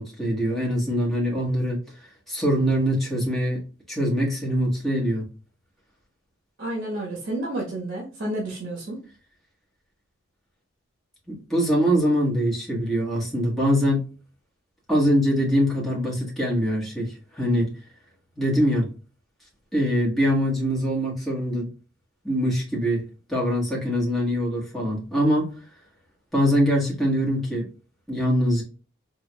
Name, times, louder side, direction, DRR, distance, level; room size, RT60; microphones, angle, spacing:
voice 1, 0.0-1.8 2.3-3.6 3.9-5.3 11.3-14.0 14.9-17.7 18.3-18.9 19.7-21.7 22.2-25.5 26.3-27.7 28.1-28.6, equal, ahead, -5 dB, 1.3 m, -23 dB
voice 2, 6.6-9.0, right 1 dB, 50° right, -3 dB, 1.2 m, -30 dB
4.5 x 2.4 x 2.2 m, 0.37 s
head